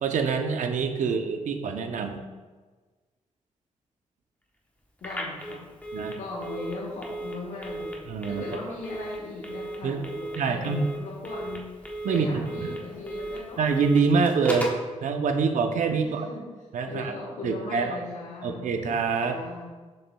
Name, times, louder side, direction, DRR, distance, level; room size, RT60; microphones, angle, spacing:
voice 1, 0.0-2.2 5.9-6.2 8.1-8.4 9.8-10.0 10.4-10.9 12.0-12.3 12.6-12.7 13.6-14.7 15.0-16.3 16.7-17.2 17.4-18.0 18.4-19.4, right 5 dB, 75° right, 6 dB, 0.6 m, -25 dB
voice 2, 5.0-5.7 6.1-13.6 16.0-16.4 16.8-18.7 19.2-19.7, left 2 dB, 70° left, -4 dB, 1.0 m, -38 dB
Telephone, 5.0-14.9, equal, 10° left, 0.9 m, -37 dB
6.9 x 6.3 x 2.3 m, 1.4 s
cardioid pair, 100°, 13 cm